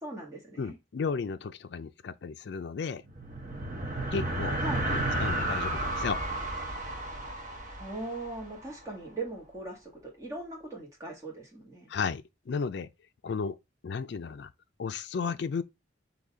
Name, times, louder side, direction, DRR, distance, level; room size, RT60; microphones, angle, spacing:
voice 1, 0.0-0.8 4.6-4.9 7.8-11.9, right 2 dB, 15° right, 1.5 m, -39 dB
voice 2, 0.6-3.0 4.1-4.6 4.8-6.2 11.9-12.9 13.2-13.6 13.8-14.5 14.8-15.6, left 5 dB, 60° left, 0.4 m, -34 dB
sound 1, 3.0-8.8, right 1 dB, 40° right, 0.9 m, -32 dB
4.0 x 2.8 x 4.6 m
head